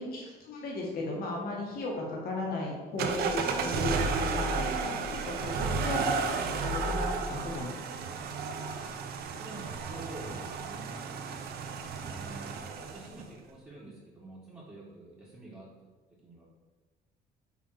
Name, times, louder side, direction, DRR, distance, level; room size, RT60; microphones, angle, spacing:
voice 1, 0.0-7.7, left 2 dB, 65° left, -2 dB, 1.8 m, -36 dB
sound 1, 3.0-13.2, right 4 dB, 65° right, 0.7 m, -33 dB
voice 2, 9.4-11.0 12.0-15.9 16.2-16.4, right 2 dB, 15° right, -9 dB, 1.7 m, -47 dB
5.7 x 3.7 x 4.8 m, 1.3 s
cardioid pair, 110°, 17 cm